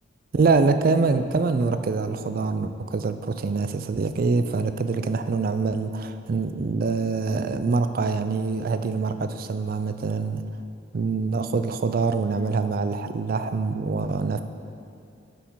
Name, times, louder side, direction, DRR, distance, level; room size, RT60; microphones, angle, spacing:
voice 1, 0.3-10.4 10.9-14.4, right 4 dB, 45° right, 10 dB, 0.3 m, -25 dB
8.4 x 5.7 x 4.6 m, 2.5 s
head